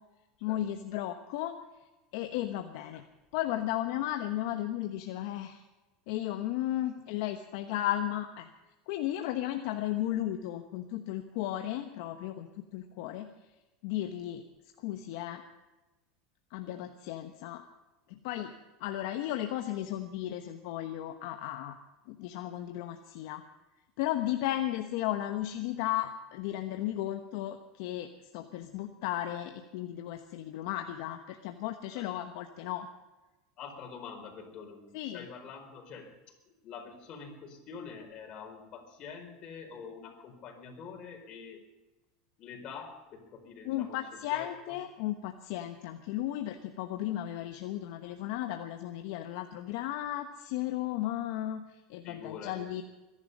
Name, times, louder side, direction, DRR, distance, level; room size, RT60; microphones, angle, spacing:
voice 1, 0.4-1.5 2.1-3.0 3.3-5.6 6.1-8.5 8.9-13.3 13.8-14.4 14.8-15.4 16.5-17.6 18.1-18.5 18.8-21.8 22.1-23.4 24.0-28.1 28.3-32.9 34.9-35.3 43.6-52.8, left 13 dB, 70° left, 6 dB, 1.1 m, -35 dB
voice 2, 33.6-36.1 36.5-41.6 42.4-44.0 44.3-44.8 52.0-52.8, left 6 dB, 45° left, 3 dB, 4.6 m, -46 dB
23.0 x 11.0 x 5.4 m, 1.1 s
supercardioid pair, 120°, 2 cm